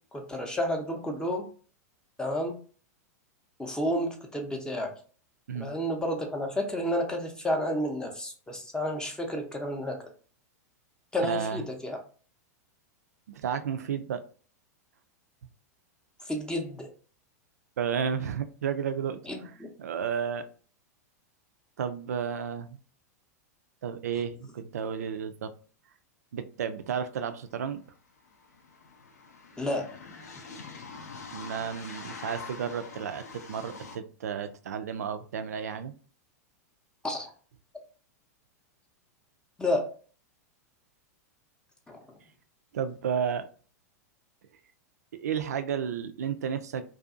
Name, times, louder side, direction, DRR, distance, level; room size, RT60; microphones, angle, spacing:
voice 1, 0.1-1.5 2.2-2.6 3.6-4.9 5.5-10.0 11.1-12.0 16.3-16.9 19.3-19.7 29.6-29.9 37.0-37.3 39.6-39.9 41.9-42.0, left 1 dB, 10° left, 2 dB, 0.6 m, -31 dB
voice 2, 11.2-11.6 13.3-14.2 17.8-20.5 21.8-22.8 23.8-25.5 26.3-27.8 31.3-35.9 42.7-43.5 45.2-46.8, right 7 dB, 70° right, 10 dB, 0.4 m, -32 dB
sound 1, 27.4-27.5 27.7-34.0, left 4 dB, 70° left, 0.5 m, -45 dB
2.6 x 2.3 x 2.4 m, 0.40 s
figure-of-eight pair, 95°, 9 cm